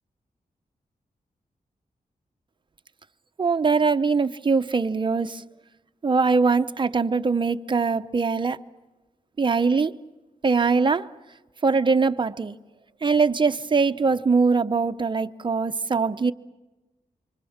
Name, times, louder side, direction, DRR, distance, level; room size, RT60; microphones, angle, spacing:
voice 1, 3.4-5.4 6.0-8.6 9.4-10.0 10.4-11.1 11.6-12.5 13.0-16.3, right 4 dB, 30° right, 0.8 m, -22 dB
27.5 x 26.0 x 7.2 m
wide cardioid pair, 160°, 15 cm